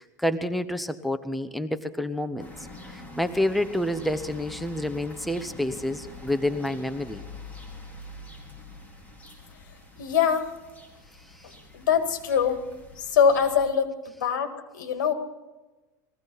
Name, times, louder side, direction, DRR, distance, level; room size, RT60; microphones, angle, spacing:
voice 1, 0.0-2.7 2.9-7.2, left 1 dB, ahead, 10 dB, 0.8 m, -28 dB
sound 1, 2.4-13.6, left 2 dB, 15° left, 4.4 m, -45 dB
voice 2, 10.0-10.5 11.7-12.6 13.0-13.9 14.2-15.1, left 7 dB, 90° left, 6 dB, 2.1 m, -23 dB
21.0 x 15.5 x 4.1 m, 1.1 s
supercardioid pair, 110°, 10 cm